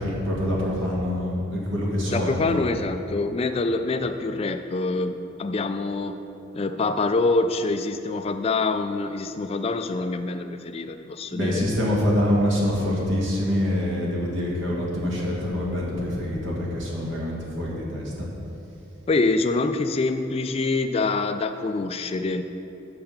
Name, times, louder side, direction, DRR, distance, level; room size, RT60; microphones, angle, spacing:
voice 1, 0.0-2.6 11.3-18.1, left 1 dB, 65° right, -4 dB, 1.9 m, -25 dB
voice 2, 2.1-6.2 6.5-11.6 19.1-22.4, left 3 dB, 30° left, 9 dB, 0.3 m, -25 dB
8.5 x 6.7 x 5.8 m, 2.9 s
head